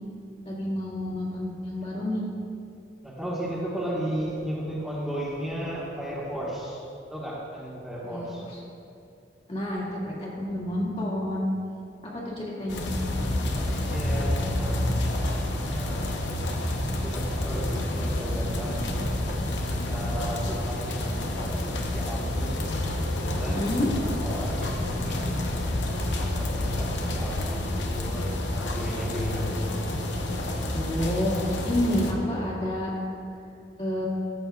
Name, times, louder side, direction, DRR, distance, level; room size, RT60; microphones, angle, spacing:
voice 1, 0.4-2.2 8.0-8.6 9.5-11.5 12.0-12.9 23.5-23.9 30.7-31.4 31.7-32.9 33.8-34.1, left 1 dB, 35° left, -6 dB, 1.9 m, -29 dB
voice 2, 3.0-6.8 7.1-8.4 13.3-16.2 17.0-19.1 19.7-22.6 23.2-23.6 23.9-25.4 26.1-29.8, equal, 5° right, -8 dB, 1.3 m, -35 dB
sound 1, 12.7-32.1, left 1 dB, 70° left, 0.8 m, -29 dB
13.5 x 7.8 x 2.4 m, 2.6 s
head